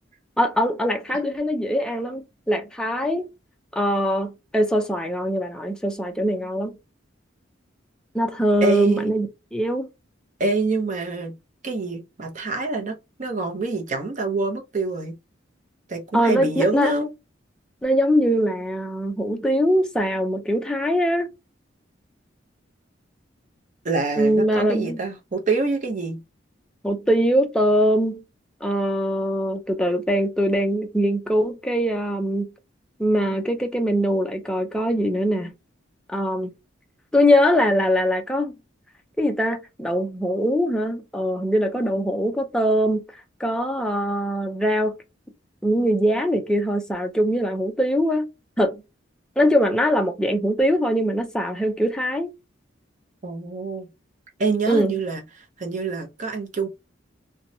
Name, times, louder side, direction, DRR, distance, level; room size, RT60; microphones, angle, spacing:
voice 1, 0.4-3.3 3.7-6.8 8.1-9.9 16.1-16.9 17.8-21.3 24.2-25.0 26.8-28.2 28.6-32.5 33.0-35.5 36.1-36.5 37.1-38.6 39.2-43.1 43.4-45.0 45.6-48.3 48.6-48.8 49.4-52.3 54.7-55.0, equal, 5° left, 0.5 m, -22 dB
voice 2, 8.6-9.1 10.4-11.3 11.6-15.2 15.9-17.1 23.8-26.2 53.2-53.9 54.4-56.7, right 3 dB, 40° right, 0.7 m, -26 dB
2.9 x 2.2 x 2.6 m
head